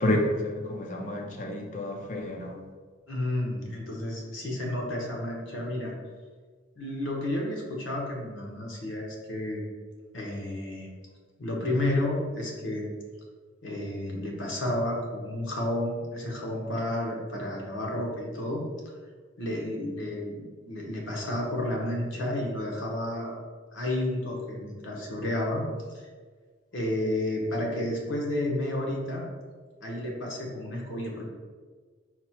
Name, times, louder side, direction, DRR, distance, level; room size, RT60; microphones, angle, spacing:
voice 1, 0.0-2.6, left 1 dB, 40° left, 1 dB, 0.5 m, -29 dB
voice 2, 3.1-5.9 6.8-9.6 10.1-10.9 11.4-12.9 13.6-18.6 19.4-23.4 23.7-25.7 25.9-26.1 26.7-29.3 29.8-31.3, left 1 dB, 70° left, -1 dB, 0.9 m, -31 dB
4.2 x 2.1 x 4.3 m, 1.5 s
head